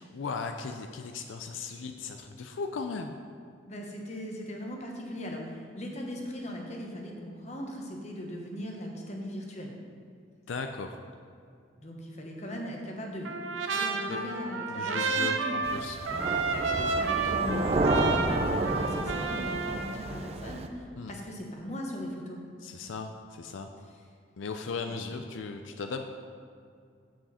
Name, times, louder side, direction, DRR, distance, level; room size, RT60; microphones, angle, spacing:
voice 1, 0.0-3.1 10.5-11.0 14.1-14.2 14.7-16.0 21.0-21.1 22.6-23.7 24.4-26.0, left 4 dB, 85° left, 6 dB, 0.4 m, -37 dB
voice 2, 3.7-9.7 11.8-15.6 16.1-16.4 16.9-22.4 23.9-24.0, equal, 35° left, 1 dB, 1.1 m, -39 dB
Trumpet, 13.3-20.0, right 4 dB, 85° right, 0.7 m, -31 dB
sound 1, 15.6-20.7, right 2 dB, 30° right, 0.4 m, -30 dB
7.9 x 7.4 x 4.2 m, 2.3 s
head